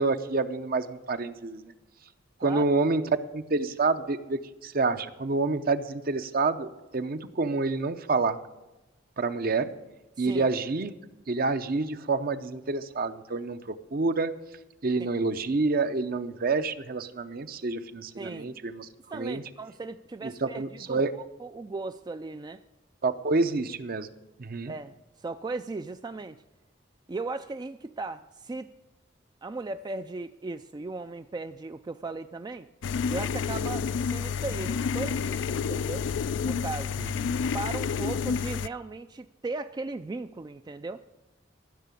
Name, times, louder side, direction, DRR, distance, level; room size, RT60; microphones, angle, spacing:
voice 1, 0.0-1.7 2.4-3.0 3.3-8.4 9.2-9.7 10.2-10.9 11.3-14.3 14.8-19.4 20.2-21.1 23.0-24.1 24.4-24.7, right 3 dB, 50° right, 11 dB, 0.7 m, -28 dB
voice 2, 10.2-10.5 15.0-15.1 18.2-18.5 19.1-22.6 24.7-26.4 27.1-28.7 29.4-32.7 33.1-36.1 36.4-37.0 37.5-41.0, right 3 dB, 20° right, 10 dB, 0.3 m, -37 dB
sound 1, 32.8-38.7, left 6 dB, 70° left, 0.4 m, -29 dB
14.0 x 6.6 x 8.4 m, 1.0 s
head